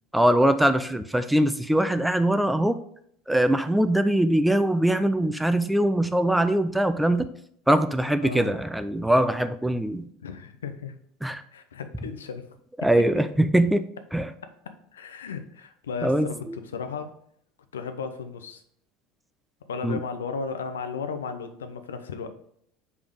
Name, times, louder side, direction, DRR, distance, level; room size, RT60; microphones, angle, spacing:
voice 1, 0.1-2.8 3.3-7.3 7.7-10.1 11.2-11.4 12.8-13.8 14.1-14.3 16.0-16.6 19.8-20.0, right 1 dB, 5° right, 11 dB, 0.4 m, -22 dB
voice 2, 8.2-8.5 10.2-11.0 11.5-12.4 14.9-17.1 17.7-18.6 19.7-22.3, left 5 dB, 80° left, 9 dB, 0.6 m, -35 dB
5.2 x 4.8 x 5.1 m, 0.68 s
hypercardioid pair, 75°, 0 cm